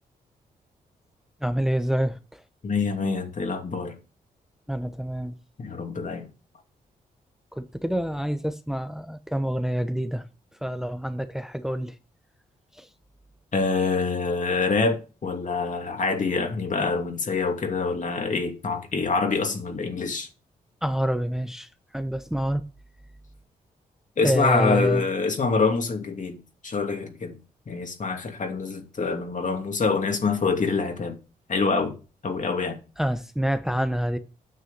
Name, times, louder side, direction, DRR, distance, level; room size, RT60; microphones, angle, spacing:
voice 1, 1.4-2.4 4.7-5.4 7.5-10.3 10.6-11.9 12.7-12.9 20.8-22.6 24.2-25.0 33.0-34.2, equal, 5° right, 1.0 m, -27 dB
voice 2, 2.6-4.0 5.6-6.3 13.5-20.3 24.2-27.4 27.7-31.2 31.5-32.0 32.2-32.8, left 4 dB, 50° left, 2.8 m, -26 dB
9.3 x 6.8 x 5.3 m
supercardioid pair, 55°, 16 cm